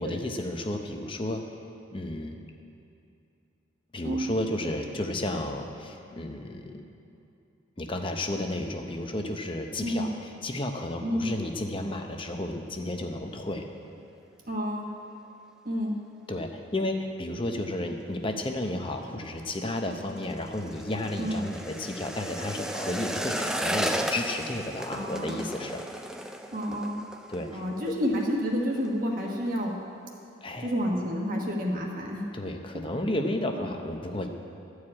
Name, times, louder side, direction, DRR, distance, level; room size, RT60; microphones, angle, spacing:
voice 1, 0.0-1.4 1.9-2.4 3.9-6.8 7.8-13.7 16.3-25.8 27.3-27.9 30.4-30.7 32.3-34.3, left 1 dB, 25° left, 4 dB, 0.7 m, -32 dB
voice 2, 14.5-14.9 15.6-15.9 21.2-21.4 24.9-25.4 26.5-27.0 27.5-29.7 30.6-32.3, equal, 40° right, -1 dB, 1.4 m, -29 dB
sound 1, 19.3-28.3 28.6-28.9 29.2-29.7 30.1-30.2, equal, 5° right, 0.3 m, -35 dB
13.5 x 4.8 x 8.6 m, 2.6 s
head